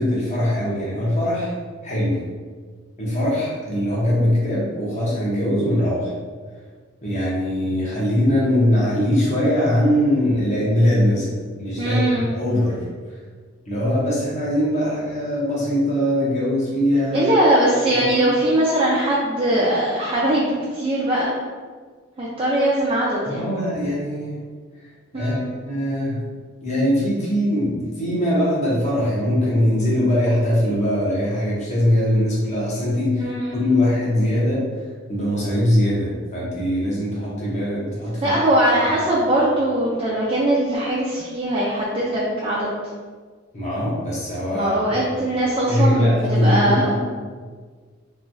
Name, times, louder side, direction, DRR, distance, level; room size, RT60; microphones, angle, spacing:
voice 1, 0.0-1.5 1.8-2.2 3.0-6.1 7.0-12.0 12.3-12.8 13.7-17.3 17.9-18.3 23.2-24.4 25.1-25.4 25.6-26.2 26.6-34.7 35.1-38.3 43.5-45.0 45.7-47.0, left 1 dB, 35° left, -6 dB, 0.9 m, -21 dB
voice 2, 11.8-12.3 17.1-21.3 22.2-23.5 25.1-25.5 33.2-33.4 38.2-42.7 44.5-47.0, right 1 dB, 25° right, -7 dB, 0.4 m, -21 dB
3.0 x 2.2 x 2.6 m, 1.6 s
head